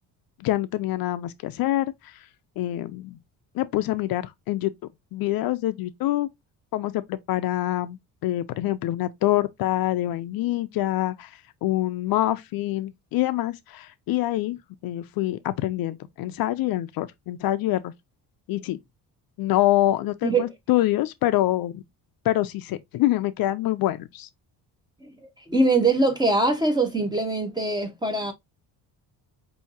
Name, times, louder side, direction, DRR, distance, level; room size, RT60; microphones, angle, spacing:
voice 1, 0.4-2.3 2.6-3.2 3.5-4.7 5.1-6.3 6.7-14.6 14.8-17.9 18.5-18.8 19.4-21.8 22.2-24.3, left 15 dB, 60° left, 0.5 m, -25 dB
voice 2, 25.5-28.3, right 2 dB, 10° right, 1.1 m, -22 dB
5.6 x 2.8 x 2.7 m
cardioid pair, 120°, 40 cm